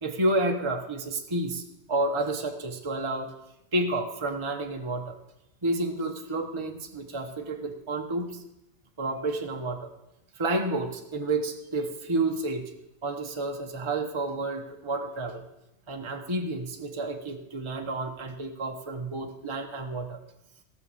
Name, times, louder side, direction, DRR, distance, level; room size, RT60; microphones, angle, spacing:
voice 1, 0.0-1.6 1.9-3.3 3.7-5.2 5.6-8.4 9.0-9.9 10.4-12.7 13.0-15.4 15.9-20.2, right 2 dB, 25° right, 3 dB, 1.0 m, -30 dB
14.5 x 7.0 x 6.9 m, 0.87 s
omnidirectional pair, 1.3 m